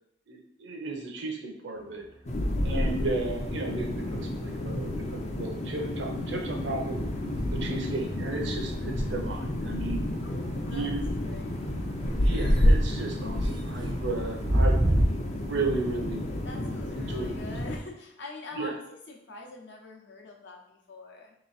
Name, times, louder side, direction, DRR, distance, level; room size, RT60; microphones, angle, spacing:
voice 1, 0.3-2.0 2.6-7.0 7.5-10.0 10.7-11.0 12.2-14.9 15.4-16.2 16.9-17.5 18.5-18.7, right 2 dB, 65° right, 2 dB, 0.7 m, -34 dB
sound 1, 1.8-3.0 3.3-15.0, right 1 dB, 25° right, 0.5 m, -33 dB
sound 2, 2.3-17.8, left 1 dB, 35° left, 0.5 m, -30 dB
voice 2, 10.2-10.8 11.2-12.1 16.4-21.3, left 2 dB, 65° left, 0 dB, 0.8 m, -44 dB
3.4 x 3.0 x 4.1 m, 0.72 s
head